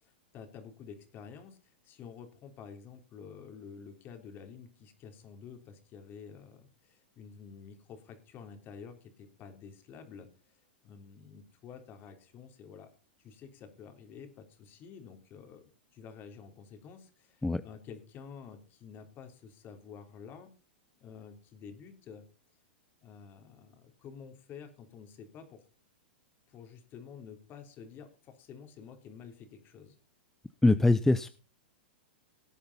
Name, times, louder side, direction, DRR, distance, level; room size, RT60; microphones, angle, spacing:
voice 1, 0.0-12.9 13.2-15.6 15.9-20.5 21.0-22.2 23.0-25.6 26.5-30.0, left 6 dB, 35° left, 7 dB, 3.3 m, -50 dB
voice 2, 30.6-31.3, left 2 dB, 5° left, 13 dB, 0.6 m, -23 dB
18.0 x 8.6 x 4.1 m, 0.35 s
hypercardioid pair, 110°, 6 cm